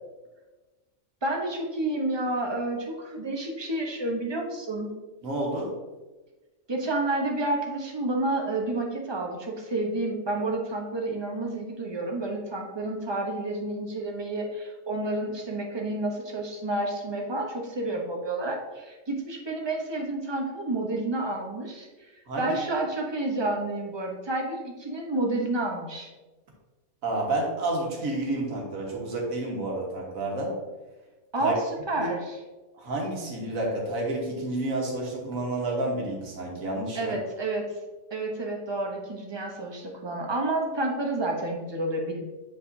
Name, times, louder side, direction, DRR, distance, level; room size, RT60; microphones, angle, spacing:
voice 1, 1.2-4.9 6.7-21.9 22.4-26.1 31.3-31.6 31.9-32.4 36.9-37.7 38.1-42.2, right 2 dB, 25° right, 1 dB, 0.7 m, -30 dB
voice 2, 5.2-5.7 22.3-22.5 27.0-30.6 31.4-31.6 32.0-32.1 32.8-37.2, right 2 dB, 75° right, -1 dB, 1.8 m, -30 dB
8.0 x 4.9 x 2.7 m, 1.2 s
omnidirectional pair, 1.5 m